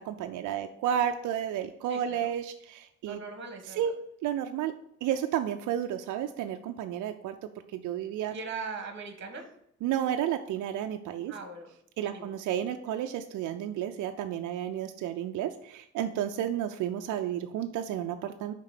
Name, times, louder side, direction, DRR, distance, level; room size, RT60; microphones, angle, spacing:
voice 1, 0.0-3.2 3.8-3.9 4.2-4.7 5.0-7.3 7.7-8.3 9.8-11.3 12.0-18.5, right 10 dB, 75° right, 6 dB, 0.5 m, -32 dB
voice 2, 1.9-2.3 3.0-3.9 8.3-9.5 11.3-11.7 12.0-12.3, right 4 dB, 40° right, 5 dB, 1.3 m, -40 dB
5.0 x 3.7 x 5.7 m, 0.72 s
cardioid pair, 90°, 30 cm